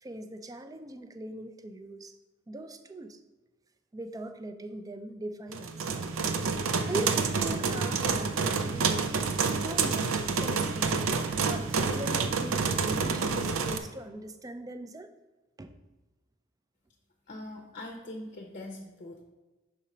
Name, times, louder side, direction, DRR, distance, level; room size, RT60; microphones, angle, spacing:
voice 1, 0.0-2.1 2.5-3.2 3.9-5.9 6.4-8.4 8.7-9.0 9.6-11.0 11.4-15.1 15.6-15.7, right 1 dB, 15° right, 9 dB, 0.4 m, -40 dB
sound 1, 5.5-13.8, right 5 dB, 80° right, 0.6 m, -28 dB
voice 2, 17.3-19.2, left 1 dB, 40° left, 2 dB, 0.6 m, -42 dB
5.6 x 4.2 x 5.0 m, 1.2 s
head